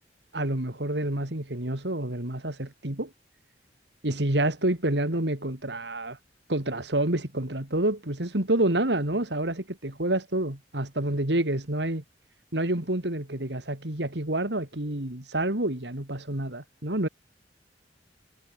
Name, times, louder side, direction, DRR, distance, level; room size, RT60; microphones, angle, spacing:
voice 1, 0.3-3.1 4.0-6.2 6.5-12.0 12.5-17.1, right 1 dB, 70° right, 3.1 m, -28 dB
head